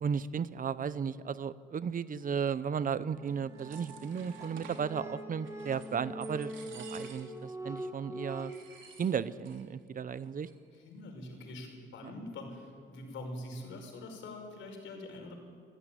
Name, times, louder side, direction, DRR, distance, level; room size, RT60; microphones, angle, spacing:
voice 1, 0.0-8.5 9.0-10.5 12.0-12.1, right 7 dB, 45° right, 16 dB, 0.8 m, -35 dB
sound 1, 3.1-8.4, right 1 dB, 15° right, 5.4 m, -43 dB
sound 2, 3.3-4.9 5.4-6.0 6.2-7.4 7.8-7.9 8.3-9.6 9.9-10.0 10.2-10.8, right 6 dB, 75° right, 3.5 m, -53 dB
voice 2, 10.7-15.3, left 1 dB, 80° left, 3 dB, 5.5 m, -44 dB
25.0 x 15.0 x 9.3 m, 2.1 s
cardioid pair, 90°, 20 cm